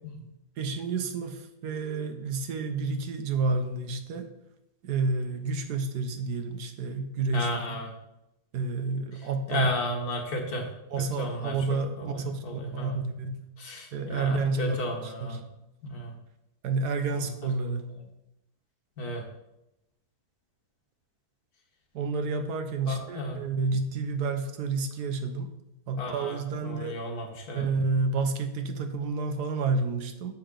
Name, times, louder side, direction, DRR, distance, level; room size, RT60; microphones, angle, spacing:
voice 1, 0.6-4.3 4.8-7.8 8.5-9.7 10.9-13.4 13.9-14.8 15.0-15.4 16.6-17.9 21.9-25.5 25.9-27.0 27.5-30.3, right 4 dB, 80° right, 7 dB, 1.5 m, -30 dB
voice 2, 7.3-7.9 9.5-10.7 11.0-11.6 12.0-12.9 13.6-15.4 15.8-16.1 19.0-19.2 22.9-23.4 26.0-27.7, left 1 dB, 70° left, 1 dB, 2.0 m, -34 dB
9.2 x 7.1 x 3.8 m, 0.90 s
omnidirectional pair, 1.7 m